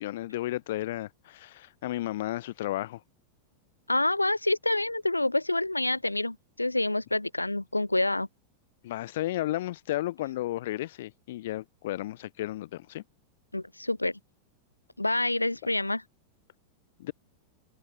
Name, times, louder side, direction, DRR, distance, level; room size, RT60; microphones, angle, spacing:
voice 1, 0.0-3.0 8.8-13.0 17.0-17.1, left 15 dB, 55° left, 0.8 m, -33 dB
voice 2, 3.9-8.3 13.5-14.1 15.0-16.0, left 2 dB, 85° left, 0.3 m, -27 dB
figure-of-eight pair, 90°, 0 cm